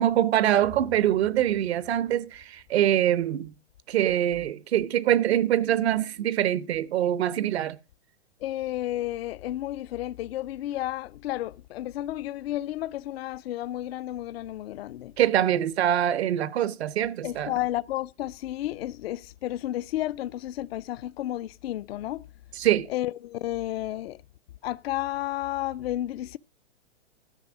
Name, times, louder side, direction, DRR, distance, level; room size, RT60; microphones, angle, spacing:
voice 1, 0.0-3.5 3.9-7.8 15.2-17.5 22.6-22.9, right 11 dB, 65° right, 0.7 m, -24 dB
sound 1, 0.5-2.8, right 5 dB, 10° right, 0.4 m, -48 dB
voice 2, 8.4-15.1 17.2-22.2 22.9-24.2 24.6-26.4, left 14 dB, 60° left, 0.4 m, -32 dB
13.0 x 5.4 x 6.0 m
hypercardioid pair, 145°, 35 cm